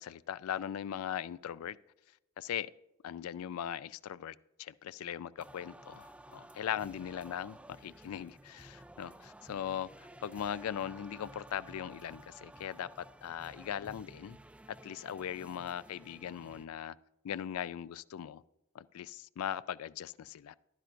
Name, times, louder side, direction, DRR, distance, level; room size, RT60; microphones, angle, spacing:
voice 1, 0.0-1.8 2.4-2.7 3.0-14.4 14.8-17.0 17.2-18.4 18.7-20.5, left 9 dB, 85° left, 0.3 m, -39 dB
sound 1, 5.4-16.7, right 1 dB, 5° right, 0.3 m, -54 dB
14.5 x 11.5 x 2.5 m
head